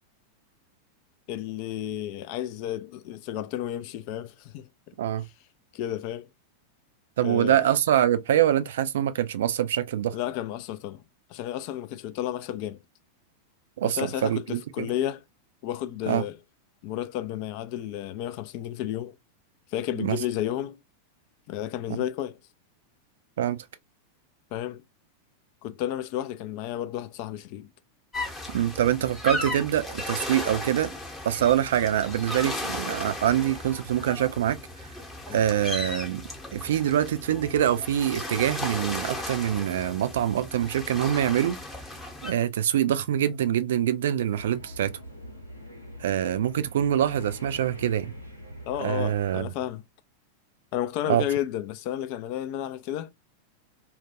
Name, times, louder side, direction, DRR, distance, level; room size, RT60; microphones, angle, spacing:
voice 1, 1.3-4.9 5.7-6.3 7.2-7.6 10.1-11.0 11.3-12.8 13.8-15.2 15.6-16.4 16.8-19.2 19.7-20.8 21.5-22.4 24.5-24.8 25.6-27.7 35.3-35.4 48.7-49.8 50.7-53.1, left 12 dB, 45° left, 0.3 m, -32 dB
voice 2, 7.2-10.2 13.8-14.9 16.1-16.2 20.0-20.2 23.4-23.6 28.5-30.9 31.2-34.6 35.3-36.2 36.5-41.6 42.2-44.9 46.0-48.1 48.8-49.5 51.1-51.2, right 10 dB, 60° right, 0.3 m, -25 dB
sound 1, 28.1-42.3, left 2 dB, 10° left, 0.8 m, -36 dB
sound 2, 44.3-49.4, equal, 90° right, 0.8 m, -43 dB
2.3 x 2.2 x 2.7 m
figure-of-eight pair, 90°, 0 cm